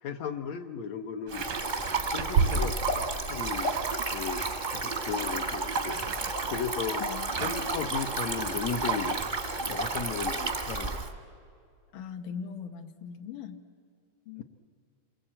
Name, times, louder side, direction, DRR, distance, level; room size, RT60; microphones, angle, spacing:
voice 1, 0.0-1.5 2.0-3.7 4.1-4.4 4.7-6.1 6.5-7.0 7.4-9.2 9.7-11.0, left 6 dB, 70° left, 5 dB, 1.9 m, -35 dB
Stream, 1.3-11.1, right 3 dB, 35° right, 0.7 m, -32 dB
sound 1, 1.3-3.2 3.6-10.3, right 5 dB, 90° right, 3.0 m, -35 dB
voice 2, 7.0-7.3 11.9-13.6 14.3-14.4, left 7 dB, 90° left, 6 dB, 2.7 m, -40 dB
27.5 x 22.0 x 8.7 m, 2.4 s
omnidirectional pair, 3.7 m